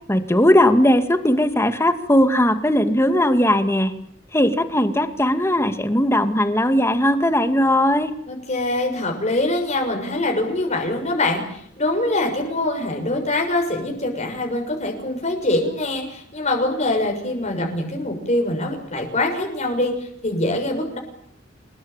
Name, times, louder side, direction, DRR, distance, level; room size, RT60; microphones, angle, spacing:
voice 1, 0.1-3.9 4.3-8.1, left 1 dB, 15° left, 8 dB, 2.3 m, -18 dB
voice 2, 8.3-21.0, left 2 dB, 35° left, 2 dB, 6.5 m, -24 dB
27.0 x 21.0 x 9.1 m, 0.69 s
head